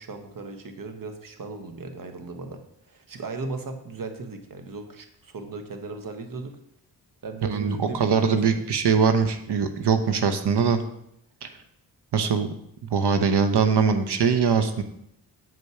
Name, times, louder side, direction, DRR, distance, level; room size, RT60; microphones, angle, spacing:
voice 1, 0.0-2.6 2.9-6.6 7.2-8.6, right 3 dB, 45° right, 6 dB, 1.3 m, -37 dB
voice 2, 7.4-10.8 11.4-11.5 12.1-12.5 12.9-14.8, right 6 dB, 65° right, 8 dB, 0.9 m, -22 dB
7.7 x 5.3 x 4.8 m, 0.75 s
supercardioid pair, 45°, 45 cm